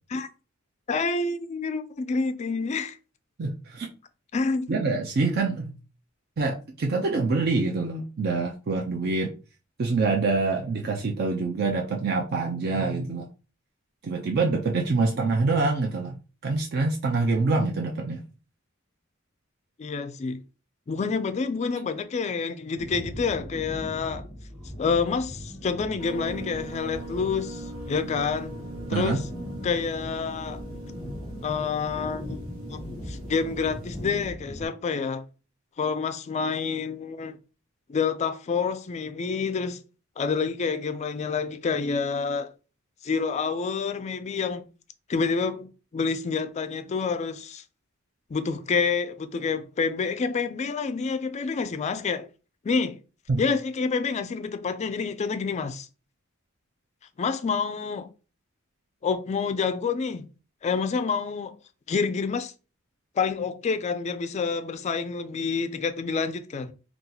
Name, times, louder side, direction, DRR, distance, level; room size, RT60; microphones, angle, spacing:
voice 1, 0.9-3.0 4.3-4.7 19.8-20.4 20.9-24.3 24.8-28.5 28.9-29.2 29.6-30.6 31.4-32.4 32.7-32.8 33.1-35.2 35.8-37.4 37.9-39.8 40.2-42.5 43.0-44.7 45.1-47.6 48.3-52.3 52.6-53.0 53.4-55.9 57.2-58.1 59.0-60.3 60.6-61.5 61.9-62.5 63.2-66.7, left 5 dB, 35° left, 0.3 m, -28 dB
voice 2, 3.4-3.9 4.7-5.7 6.4-9.3 9.8-13.3 14.0-16.2 16.4-18.2 28.9-29.2 53.3-53.4, right 3 dB, 50° right, 0.4 m, -25 dB
sound 1, 22.8-34.7, equal, 5° right, 1.1 m, -39 dB
sound 2, 26.0-34.3, right 1 dB, 80° right, 0.8 m, -41 dB
2.8 x 2.3 x 3.8 m
head